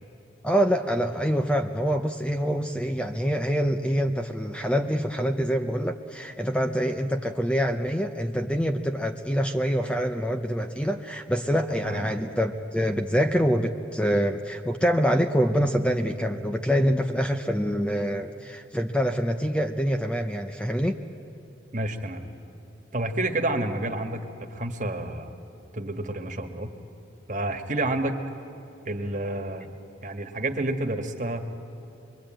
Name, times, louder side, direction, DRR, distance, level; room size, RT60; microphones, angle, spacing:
voice 1, 0.4-21.0, equal, 5° left, 6 dB, 0.7 m, -25 dB
voice 2, 21.7-22.2 22.9-24.2 24.5-25.3 25.7-26.7 27.3-28.2 28.8-29.7 30.0-31.4, right 1 dB, 40° right, 5 dB, 1.7 m, -29 dB
26.0 x 22.5 x 9.0 m, 2.8 s
head